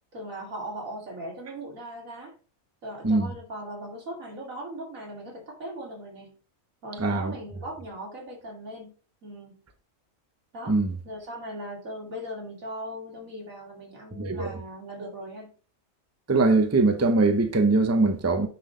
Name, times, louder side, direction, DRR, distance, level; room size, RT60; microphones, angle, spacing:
voice 1, 0.1-2.3 2.8-6.4 6.8-8.9 9.2-9.6 10.5-10.7 11.0-15.5, right 1 dB, 90° right, 2.8 m, -39 dB
voice 2, 7.0-7.3 10.7-10.9 14.1-14.5 16.3-18.5, right 3 dB, 15° right, 0.7 m, -22 dB
9.7 x 3.9 x 3.8 m
omnidirectional pair, 1.4 m